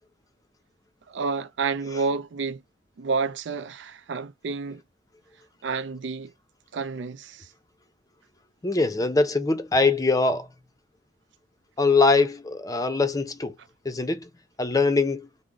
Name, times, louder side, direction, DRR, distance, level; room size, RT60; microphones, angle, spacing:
voice 1, 1.1-2.6 3.0-4.8 5.6-6.3 6.7-7.5, right 4 dB, 80° right, 0.5 m, -29 dB
voice 2, 8.6-10.5 11.8-13.5 13.8-14.3 14.6-15.3, left 3 dB, 20° left, 0.5 m, -22 dB
3.6 x 2.1 x 3.8 m
head